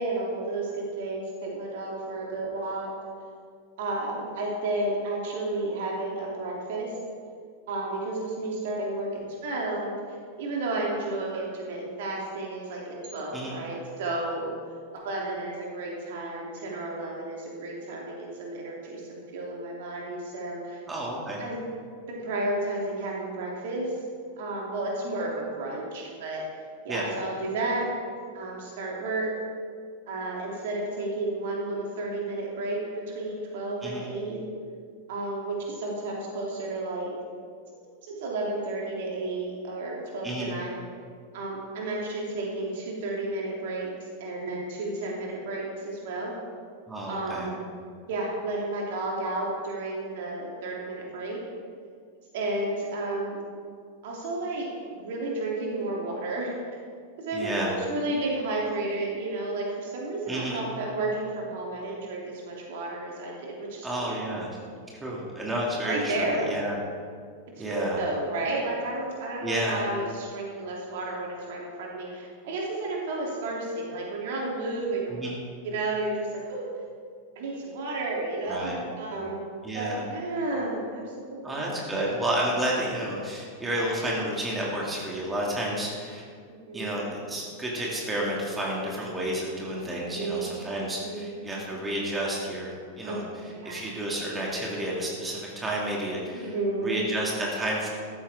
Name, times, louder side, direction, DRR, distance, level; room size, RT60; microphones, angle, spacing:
voice 1, 0.0-2.9 3.8-6.9 7.7-10.0 10.4-14.6 14.9-20.8 21.4-21.6 22.1-23.9 24.4-26.4 26.8-27.9 28.3-29.3 30.1-32.8 33.1-34.4 35.1-37.1 38.0-40.8 41.3-43.9 44.2-46.4 47.1-47.7 48.1-51.4 52.3-53.4 54.0-56.6 57.2-64.2 65.8-66.5 67.6-75.2 75.6-76.6 77.3-79.4 79.7-81.7 86.5-87.0 90.0-90.5 91.0-91.4 93.0-93.2 93.5-93.8 96.3-97.0, right 2 dB, 55° right, -2 dB, 3.2 m, -32 dB
voice 2, 13.3-13.6 20.9-21.4 26.9-27.0 33.8-34.1 40.2-40.5 46.9-47.5 57.3-57.7 60.3-60.6 63.8-64.5 65.0-66.8 67.6-68.0 69.4-69.8 75.1-75.4 78.5-78.8 79.6-80.0 81.4-86.2 86.7-96.5 96.8-97.9, right 1 dB, 15° right, -4 dB, 2.7 m, -31 dB
14.5 x 13.5 x 3.7 m, 2.1 s
figure-of-eight pair, 90°, 0 cm